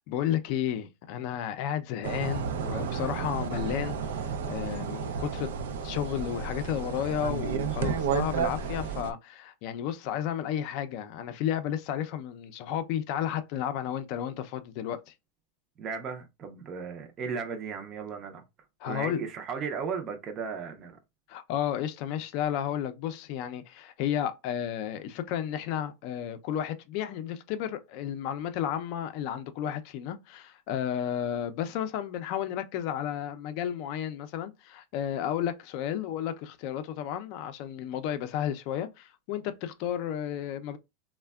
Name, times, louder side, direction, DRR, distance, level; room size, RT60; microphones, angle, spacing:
voice 1, 0.1-5.6 5.8-15.1 18.8-19.2 21.3-40.8, left 10 dB, 50° left, 0.4 m, -32 dB
sound 1, 2.0-9.1, right 6 dB, 85° right, 0.4 m, -32 dB
voice 2, 15.8-18.4 18.8-21.0, right 6 dB, 30° right, 0.5 m, -35 dB
3.3 x 2.1 x 2.3 m
supercardioid pair, 150°, 0 cm